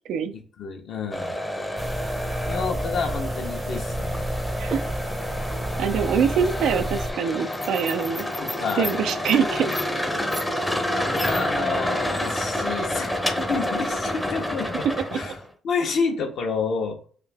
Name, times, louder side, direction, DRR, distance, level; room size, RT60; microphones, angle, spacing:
voice 1, 0.3-1.4 2.5-4.3 8.4-9.0 11.0-15.3 15.6-17.0, left 5 dB, 65° left, 2 dB, 1.1 m, -29 dB
sound 1, 1.1-15.4, left 1 dB, 5° left, 0.7 m, -28 dB
sound 2, 1.8-7.1, right 1 dB, 30° right, 0.7 m, -31 dB
voice 2, 5.8-8.3 8.8-9.8 15.0-15.2, right 7 dB, 75° right, 8 dB, 0.4 m, -24 dB
3.6 x 2.6 x 3.5 m, 0.43 s
supercardioid pair, 75°, 0 cm